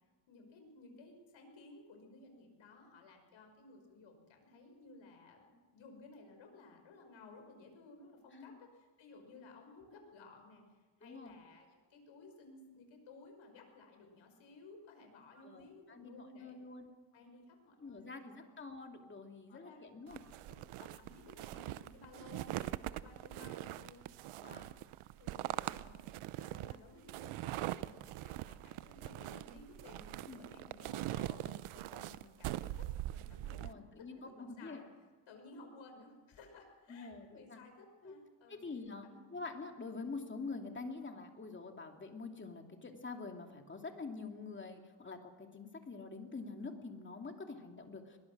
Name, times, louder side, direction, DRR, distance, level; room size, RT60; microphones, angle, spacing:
voice 1, 0.3-16.6 17.1-18.5 19.5-24.0 24.5-24.7 25.2-26.1 26.4-32.8 33.1-34.8 35.3-38.6 39.0-39.2, left 3 dB, 65° left, 4 dB, 5.8 m, -57 dB
voice 2, 11.0-11.3 15.4-16.9 17.8-20.2 24.4-24.7 30.3-30.4 33.5-34.8 36.9-37.6 38.0-38.2 38.5-48.2, left 4 dB, 25° left, 4 dB, 2.6 m, -46 dB
sound 1, 20.1-33.7, right 15 dB, 85° right, 0.8 m, -42 dB
22.0 x 20.5 x 6.1 m, 1.4 s
cardioid pair, 135°, 49 cm